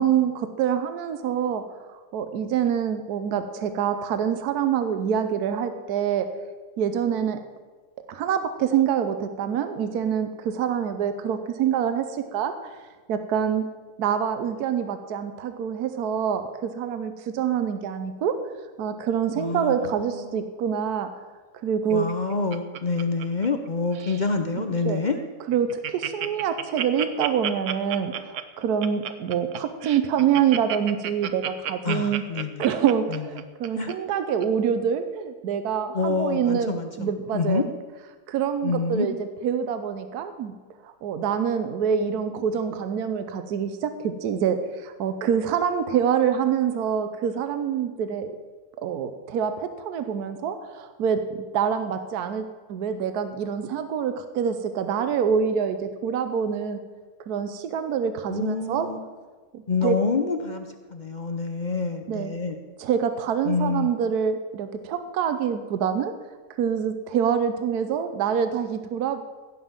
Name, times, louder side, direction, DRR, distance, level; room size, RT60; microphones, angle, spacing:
voice 1, 0.0-1.6 1.9-6.3 6.8-7.4 8.1-12.7 13.1-13.7 14.0-18.4 18.8-21.1 21.6-22.1 24.9-25.0 25.5-32.2 32.6-37.6 38.3-40.6 40.8-48.4 48.8-51.2 51.5-56.8 57.3-58.9 59.5-60.0 62.1-62.3 62.8-66.1 66.6-69.2, right 8 dB, 80° right, 9 dB, 1.3 m, -26 dB
voice 2, 19.3-20.4 21.9-25.2 31.8-32.7 33.1-33.2 33.8-33.9 35.9-37.6 38.6-39.1 58.3-59.0 59.7-62.6 63.4-63.9, left 4 dB, 45° left, 6 dB, 0.6 m, -27 dB
Laughter, 21.9-23.7 23.9-24.3 24.8-24.9 25.1-25.2 25.5-33.9 34.4-34.5, right 10 dB, 60° right, 0.9 m, -32 dB
16.0 x 5.6 x 7.3 m, 1.4 s
omnidirectional pair, 1.7 m